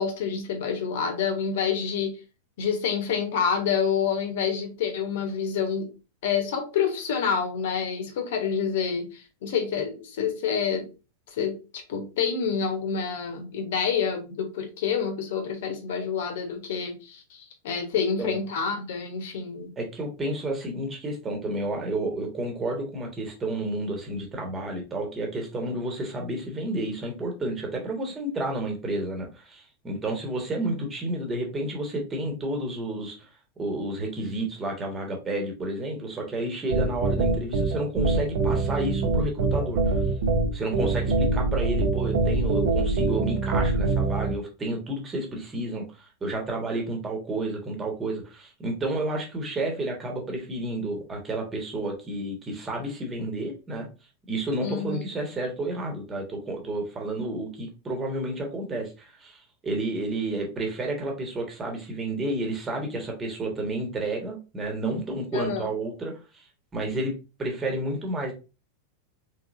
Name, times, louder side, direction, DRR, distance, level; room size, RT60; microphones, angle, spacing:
voice 1, 0.0-2.2 2.6-5.9 6.2-10.9 11.3-19.7 54.6-55.1 65.3-65.7, left 6 dB, 55° left, 6 dB, 1.2 m, -28 dB
voice 2, 19.8-33.3 33.6-40.0 40.5-53.9 54.3-66.4 66.7-67.1 67.4-68.3, right 1 dB, 20° right, 1 dB, 1.4 m, -31 dB
sound 1, 36.7-44.3, right 3 dB, 55° right, 0.8 m, -24 dB
4.0 x 3.9 x 2.6 m, 0.30 s
figure-of-eight pair, 90°, 0 cm